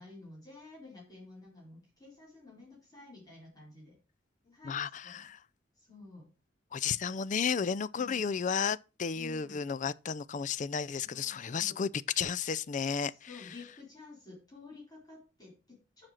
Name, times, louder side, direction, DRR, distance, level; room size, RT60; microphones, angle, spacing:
voice 1, 0.0-4.0 4.4-5.3 5.8-6.3 7.9-8.2 9.1-9.6 11.0-11.9 13.0-16.1, left 3 dB, 20° left, 4.2 m, -52 dB
voice 2, 4.6-5.4 6.7-11.9 12.2-13.1, left 6 dB, 45° left, 0.4 m, -33 dB
7.4 x 6.0 x 6.3 m
head